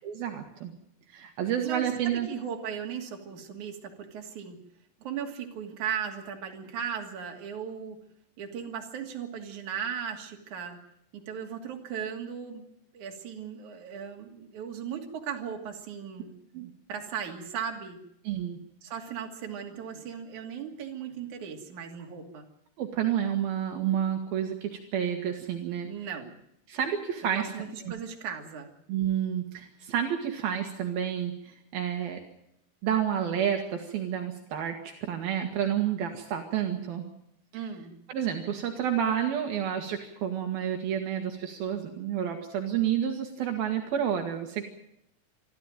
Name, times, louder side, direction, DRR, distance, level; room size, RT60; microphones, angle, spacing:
voice 1, 0.0-0.7 1.1-2.3 16.5-16.7 18.3-18.6 22.8-25.9 26.7-27.5 27.9-28.0 28.9-32.2 32.8-37.0 38.1-44.6, right 9 dB, 70° right, 3 dB, 3.5 m, -30 dB
voice 2, 1.6-4.6 5.0-8.0 8.4-10.8 11.1-12.6 12.9-16.3 16.9-18.0 18.8-22.5 25.9-26.4 27.2-28.7 37.5-37.9, right 7 dB, 55° right, 2 dB, 3.8 m, -37 dB
25.5 x 13.5 x 9.1 m, 0.78 s
omnidirectional pair, 4.5 m